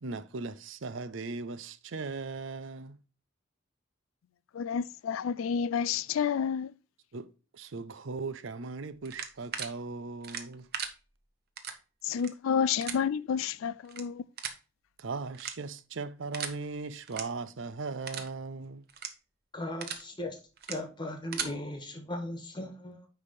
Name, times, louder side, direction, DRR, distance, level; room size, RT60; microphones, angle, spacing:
voice 1, 0.0-3.0 7.1-10.7 15.0-18.8, right 3 dB, 70° right, 0.6 m, -38 dB
voice 2, 4.5-6.7 12.0-14.2, left 7 dB, 90° left, 0.4 m, -30 dB
sound 1, 9.1-9.7 10.2-10.9 11.6-11.7 12.1-12.3 12.8-13.0 13.8-14.0 14.4-14.6 15.3-15.8 16.3-16.5 17.0-17.2 17.6-17.7 18.1-18.3 18.9-19.1 19.6-20.0 20.6-20.8 21.1-21.5, right 7 dB, 55° right, 1.1 m, -37 dB
voice 3, 19.5-20.4 20.7-23.1, left 1 dB, 25° left, 1.6 m, -37 dB
9.8 x 3.4 x 5.1 m
head